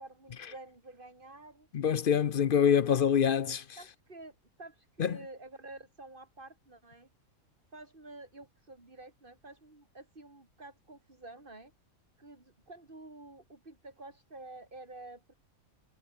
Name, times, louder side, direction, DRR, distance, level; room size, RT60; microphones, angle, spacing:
voice 1, 0.0-1.7 2.8-3.0 3.8-7.1 7.7-11.7 12.2-15.3, right 2 dB, 35° right, 3.9 m, -50 dB
voice 2, 1.7-3.6 5.0-5.1, left 8 dB, 50° left, 0.6 m, -25 dB
omnidirectional pair, 1.5 m